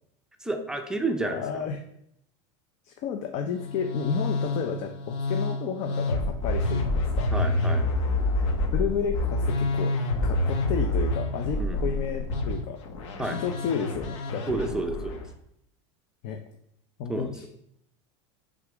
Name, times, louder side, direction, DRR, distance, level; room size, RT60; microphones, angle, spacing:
voice 1, 0.4-1.6 7.3-7.8 11.6-11.8 13.2-13.4 14.5-15.2 17.1-17.3, right 2 dB, 5° right, 4 dB, 0.6 m, -30 dB
voice 2, 1.2-1.8 2.8-7.3 8.7-9.9 10.2-12.8 13.2-14.5 16.2-16.4 17.0-17.5, left 7 dB, 45° left, 5 dB, 0.6 m, -32 dB
Musical instrument, 3.5-15.3, left 2 dB, 85° left, 1.2 m, -28 dB
6.7 x 3.7 x 5.0 m, 0.75 s
supercardioid pair, 150°, 15 cm